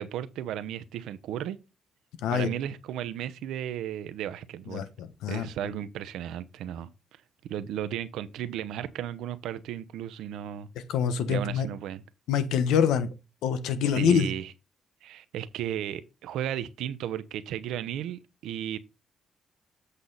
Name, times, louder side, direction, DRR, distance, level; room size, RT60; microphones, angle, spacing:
voice 1, 0.0-1.6 2.3-4.9 5.3-6.9 7.5-10.7 11.3-12.0 13.9-14.5 15.0-18.8, right 10 dB, 85° right, 0.8 m, -34 dB
voice 2, 2.2-2.5 4.7-5.5 10.9-11.7 12.3-13.1 13.4-14.3, left 7 dB, 90° left, 1.1 m, -25 dB
8.2 x 5.6 x 4.0 m
cardioid pair, 90°, 0 cm